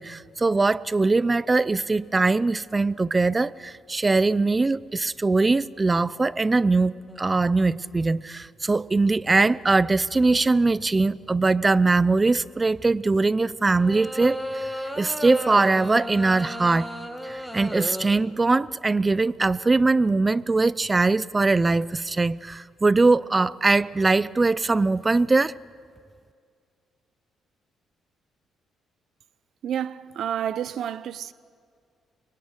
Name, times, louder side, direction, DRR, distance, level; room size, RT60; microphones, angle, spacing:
voice 1, 0.0-16.9 17.2-25.5, right 3 dB, 25° right, 0.6 m, -22 dB
sound 1, 7.1-7.3 13.7-18.1, equal, 5° right, 2.6 m, -34 dB
voice 2, 29.6-31.3, right 9 dB, 70° right, 0.7 m, -29 dB
25.0 x 23.5 x 9.8 m
cardioid pair, 90°, 0 cm